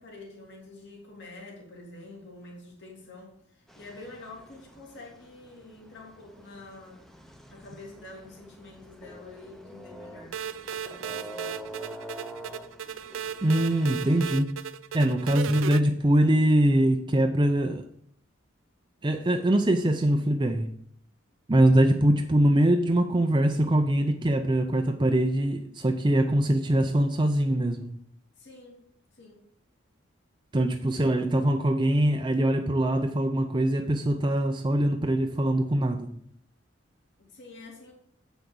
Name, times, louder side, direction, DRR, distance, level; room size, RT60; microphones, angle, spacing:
voice 1, 0.0-7.0 7.5-10.4 10.8-11.5 28.4-28.8 29.1-29.4 37.2-37.9, left 2 dB, 60° left, 3.0 m, -47 dB
sound 1, 3.7-14.4, equal, ahead, 0.8 m, -46 dB
sound 2, 10.3-15.8, right 8 dB, 75° right, 0.5 m, -36 dB
voice 2, 13.4-14.5 14.9-17.8 19.0-20.7 21.5-28.0 30.5-36.2, right 1 dB, 25° right, 0.5 m, -23 dB
8.0 x 6.0 x 7.0 m
head